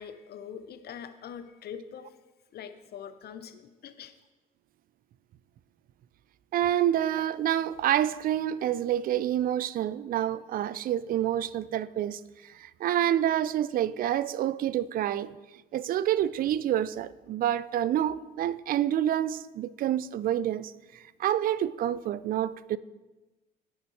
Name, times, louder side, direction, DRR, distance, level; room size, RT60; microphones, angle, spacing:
voice 1, 0.0-2.2 2.5-4.1, left 8 dB, 50° left, 0.7 m, -43 dB
voice 2, 6.5-15.3 15.7-22.8, right 11 dB, 45° right, 0.4 m, -28 dB
10.5 x 6.4 x 3.2 m
hypercardioid pair, 50°, 21 cm